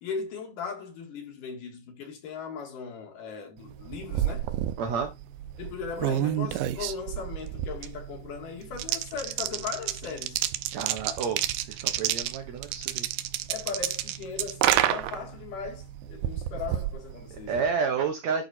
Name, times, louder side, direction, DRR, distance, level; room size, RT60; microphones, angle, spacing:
voice 1, 0.0-4.5 5.6-10.4 13.5-17.6, left 6 dB, 75° left, 3.6 m, -38 dB
sound 1, 3.7-17.7, right 12 dB, 85° right, 2.4 m, -30 dB
voice 2, 4.8-5.1 10.7-13.1 17.3-18.4, right 6 dB, 65° right, 2.1 m, -30 dB
11.0 x 4.1 x 4.4 m
omnidirectional pair, 3.8 m